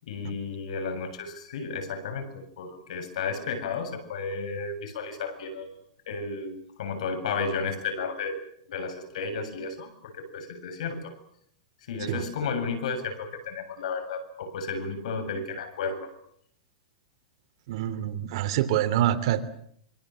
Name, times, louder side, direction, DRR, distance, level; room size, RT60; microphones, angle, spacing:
voice 1, 0.0-5.8 6.1-8.4 8.7-11.1 11.8-16.1, left 4 dB, 75° left, 7 dB, 7.8 m, -33 dB
voice 2, 17.7-19.4, right 12 dB, 55° right, 9 dB, 3.1 m, -25 dB
26.0 x 25.0 x 7.7 m, 0.67 s
supercardioid pair, 155°, 4 cm